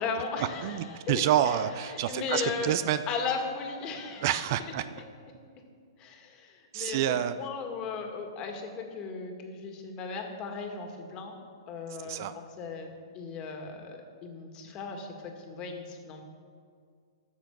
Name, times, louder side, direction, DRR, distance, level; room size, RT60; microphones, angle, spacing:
voice 1, 0.0-1.6 1.9-2.7 3.1-4.3 6.0-11.4 11.7-16.2, left 5 dB, 30° left, 3 dB, 1.9 m, -36 dB
voice 2, 0.6-3.0 4.2-4.9 6.7-7.3 12.0-12.3, right 11 dB, 50° right, 12 dB, 0.5 m, -28 dB
13.0 x 6.9 x 6.0 m, 2.2 s
hypercardioid pair, 120°, 3 cm